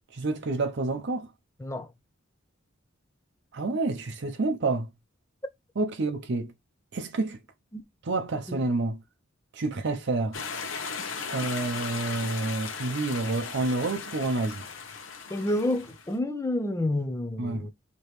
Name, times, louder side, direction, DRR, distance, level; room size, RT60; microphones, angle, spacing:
voice 1, 0.1-1.3 3.5-4.9 5.8-6.5 6.9-7.4 8.0-9.0 9.5-10.4 11.3-14.7 17.4-17.7, right 2 dB, 60° right, 0.6 m, -29 dB
sound 1, 10.3-16.2, left 5 dB, 75° left, 1.0 m, -37 dB
voice 2, 15.3-17.7, left 1 dB, 15° left, 0.5 m, -29 dB
4.8 x 2.9 x 3.1 m
head